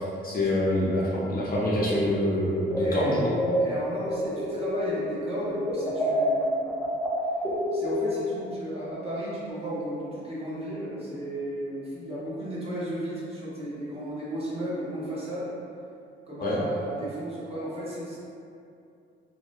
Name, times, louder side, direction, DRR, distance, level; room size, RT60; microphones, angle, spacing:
voice 1, 0.0-3.3 16.4-16.6, left 1 dB, 50° left, -5 dB, 0.6 m, -26 dB
sound 1, 1.9-5.1 5.4-8.4, equal, 5° left, 0.4 m, -28 dB
voice 2, 2.8-3.1 3.6-6.8 7.7-15.5 16.3-18.2, right 1 dB, 30° right, -8 dB, 0.8 m, -34 dB
2.7 x 2.1 x 2.5 m, 2.5 s
cardioid pair, 90°, 20 cm